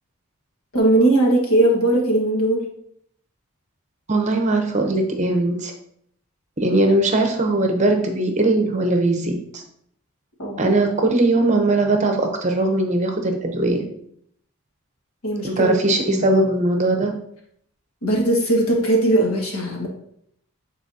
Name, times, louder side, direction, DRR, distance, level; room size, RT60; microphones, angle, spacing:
voice 1, 0.7-2.6 10.4-10.8 15.2-15.8 16.1-16.4 18.0-19.9, right 1 dB, 80° left, -1 dB, 1.6 m, -19 dB
voice 2, 4.1-5.7 6.6-9.6 10.6-13.9 15.4-17.1, right 2 dB, 30° right, 4 dB, 0.7 m, -20 dB
8.9 x 4.0 x 2.7 m, 0.70 s
head